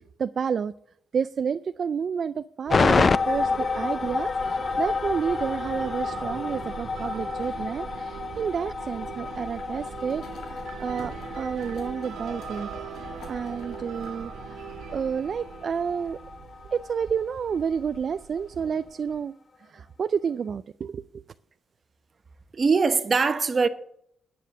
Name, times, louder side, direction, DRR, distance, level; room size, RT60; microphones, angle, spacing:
voice 1, 0.2-0.7 1.1-2.3 2.6-4.3 4.8-7.8 8.4-10.2 10.8-11.1 11.4-12.7 13.3-14.3 14.9-16.2 16.9-19.3 20.0-20.6 20.9-21.0, right 6 dB, 55° right, 0.3 m, -29 dB
sound 1, 2.7-17.0 17.3-17.4, left 4 dB, 40° left, 0.4 m, -30 dB
sound 2, 2.7-19.2, right 7 dB, 85° right, 1.7 m, -41 dB
sound 3, 9.6-14.2 14.6-14.7, left 4 dB, 80° left, 2.2 m, -50 dB
voice 2, 22.5-23.7, right 4 dB, 40° right, 1.1 m, -22 dB
10.0 x 9.3 x 6.6 m
cardioid pair, 80°, 0 cm